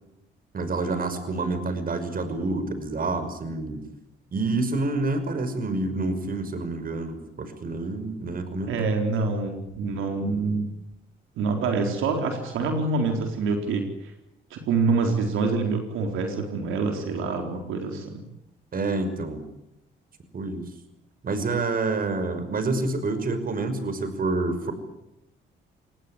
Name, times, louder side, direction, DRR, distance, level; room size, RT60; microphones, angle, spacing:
voice 1, 0.5-3.8 4.3-8.8 18.7-19.4 20.3-20.6 21.2-24.7, right 3 dB, 45° right, 10 dB, 5.9 m, -28 dB
voice 2, 8.7-10.7 11.4-14.1 14.5-18.2, right 4 dB, 85° right, 4 dB, 4.2 m, -26 dB
27.5 x 19.5 x 10.0 m, 0.84 s
cardioid pair, 90°, 20 cm